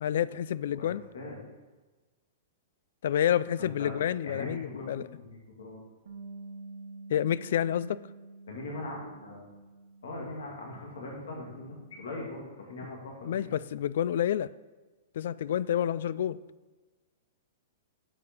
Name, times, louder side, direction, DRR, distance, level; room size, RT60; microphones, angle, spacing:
voice 1, 0.0-1.0 3.0-5.0 7.1-8.0 13.3-14.5 15.1-16.4, left 10 dB, 70° left, 18 dB, 0.3 m, -29 dB
voice 2, 3.6-3.9 4.2-5.3 5.6-5.8 8.5-9.5 10.0-13.5, left 2 dB, 85° left, -2 dB, 2.5 m, -40 dB
Bass guitar, 6.1-12.3, right 3 dB, 85° right, 1.2 m, -49 dB
8.4 x 6.9 x 5.4 m, 1.2 s
hypercardioid pair, 150°, 0 cm